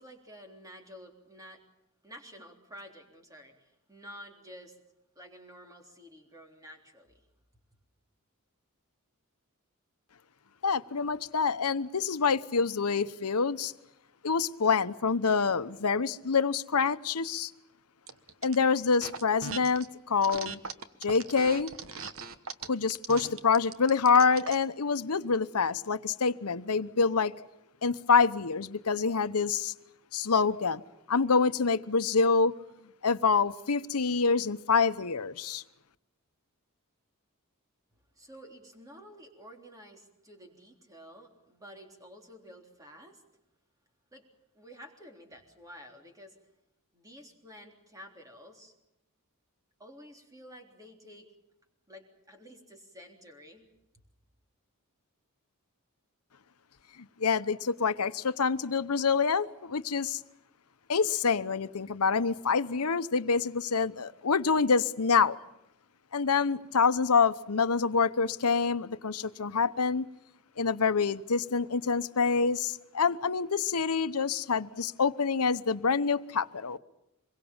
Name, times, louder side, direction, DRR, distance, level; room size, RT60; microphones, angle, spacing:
voice 1, 0.0-1.6 2.0-4.8 5.2-7.3 38.1-43.2 44.1-44.3 44.5-46.4 46.9-48.7 49.8-51.3 51.9-53.7, equal, 15° right, 3 dB, 3.6 m, -51 dB
voice 2, 10.6-13.7 14.2-17.5 18.4-20.6 21.0-21.7 22.7-27.3 27.8-29.7 30.1-30.8 31.1-32.5 33.0-35.6 57.0-60.2 60.9-65.4 66.1-70.0 70.6-76.8, left 5 dB, 90° left, 13 dB, 0.9 m, -26 dB
sound 1, 18.1-18.6 18.9-19.9 20.2-24.6, right 5 dB, 65° right, 1.3 m, -40 dB
26.0 x 22.5 x 7.2 m, 0.89 s
head